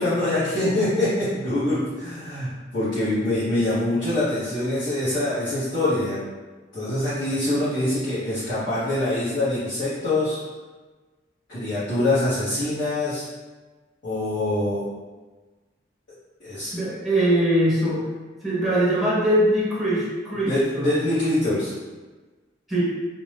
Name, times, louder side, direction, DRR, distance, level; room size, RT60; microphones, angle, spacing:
voice 1, 0.0-6.2 6.7-10.4 11.5-13.3 14.0-14.8 16.4-16.7 20.4-21.7, left 1 dB, 50° left, -15 dB, 1.0 m, -24 dB
voice 2, 16.7-18.2 18.4-20.9 22.7-22.8, right 1 dB, ahead, -8 dB, 0.8 m, -22 dB
2.7 x 2.2 x 3.2 m, 1.3 s
head